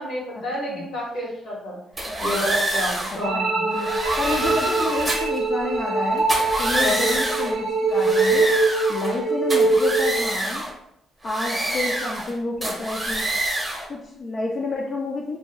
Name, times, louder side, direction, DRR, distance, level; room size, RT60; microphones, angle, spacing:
voice 1, 0.0-1.8 2.2-3.4 6.8-7.2, equal, 80° left, -4 dB, 1.4 m, -29 dB
sound 1, 2.0-3.2 3.7-5.4 6.2-7.5 7.9-9.2 9.5-10.7 11.2-12.3 12.6-13.9, right 1 dB, 20° right, 0.7 m, -26 dB
sound 2, 3.2-10.2, right 3 dB, 65° right, 0.5 m, -23 dB
voice 2, 3.3-3.9 4.2-6.3 6.6-8.5 8.9-10.7 11.2-13.3 13.9-15.4, left 3 dB, 45° left, -2 dB, 0.4 m, -29 dB
2.6 x 2.2 x 3.1 m, 0.78 s
cardioid pair, 90°, 0 cm